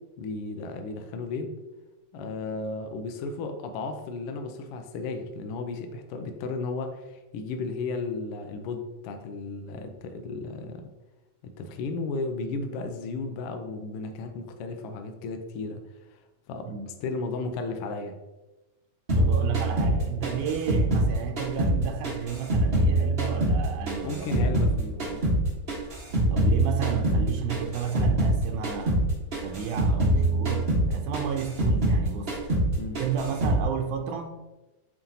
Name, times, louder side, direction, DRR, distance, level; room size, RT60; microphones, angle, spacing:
voice 1, 0.2-1.5 2.1-10.8 11.4-15.8 16.1-16.2 16.5-18.1 24.0-25.2 32.8-33.0, left 3 dB, 85° left, 1.2 m, -34 dB
sound 1, 19.1-21.8 22.0-24.7 25.0-28.4 28.6-29.0 29.3-32.0 32.3-32.7 32.9-33.6, right 1 dB, 40° right, 0.8 m, -24 dB
voice 2, 19.2-24.5 26.3-29.0 29.4-32.4 33.0-34.5, right 7 dB, 85° right, 2.1 m, -32 dB
7.9 x 5.0 x 2.8 m
omnidirectional pair, 3.5 m